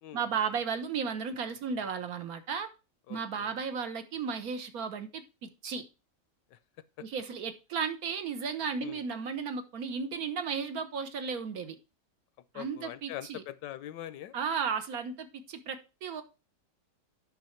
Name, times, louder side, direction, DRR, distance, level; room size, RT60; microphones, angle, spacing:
voice 1, 0.1-2.7 3.1-5.8 7.0-11.8 12.5-13.4 14.3-16.2, right 6 dB, 60° right, 1.2 m, -34 dB
voice 2, 3.1-3.6 6.5-6.6 8.8-9.1 12.5-14.4, left 12 dB, 80° left, 1.3 m, -43 dB
9.5 x 5.6 x 4.4 m
omnidirectional pair, 1.9 m